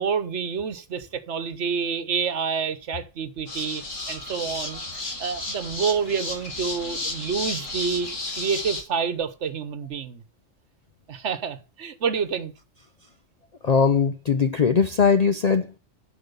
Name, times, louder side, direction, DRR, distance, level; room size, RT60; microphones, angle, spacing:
voice 1, 0.0-10.2 11.1-12.5, right 6 dB, 65° right, 1.2 m, -28 dB
sound 1, 3.5-8.8, left 2 dB, 75° left, 2.7 m, -33 dB
voice 2, 13.6-15.7, left 6 dB, 55° left, 0.4 m, -20 dB
12.0 x 4.8 x 6.8 m
omnidirectional pair, 1.3 m